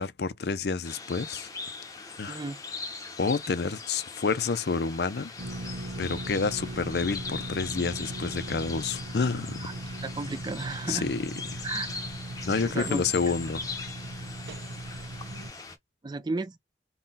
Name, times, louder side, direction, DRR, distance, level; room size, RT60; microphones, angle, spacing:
voice 1, 0.0-1.5 2.2-2.4 3.2-5.3 6.0-9.7 10.9-11.6 12.4-13.7, left 4 dB, 70° left, 0.5 m, -29 dB
sound 1, 0.8-15.8, left 4 dB, 20° left, 0.7 m, -40 dB
voice 2, 2.3-2.6 9.6-9.7 10.0-11.1 11.6-11.9 12.6-13.0 16.0-16.6, right 3 dB, 25° right, 0.3 m, -33 dB
sound 2, 5.4-15.5, right 1 dB, 90° right, 0.9 m, -39 dB
3.8 x 2.3 x 4.1 m
head